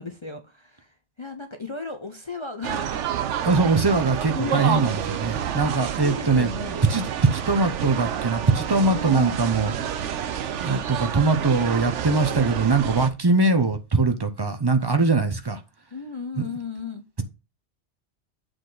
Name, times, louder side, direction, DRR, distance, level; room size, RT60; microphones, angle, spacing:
voice 1, 0.0-3.0 4.3-5.0 6.0-6.9 8.9-9.4 15.9-17.0, left 4 dB, 30° left, 6 dB, 0.6 m, -35 dB
sound 1, 2.6-13.1, right 9 dB, 80° right, 1.0 m, -29 dB
voice 2, 3.4-6.5 6.9-7.1 7.3-10.0 10.6-15.6 16.4-16.5, right 3 dB, 25° right, 8 dB, 0.6 m, -22 dB
7.9 x 4.1 x 3.9 m, 0.28 s
omnidirectional pair, 1.2 m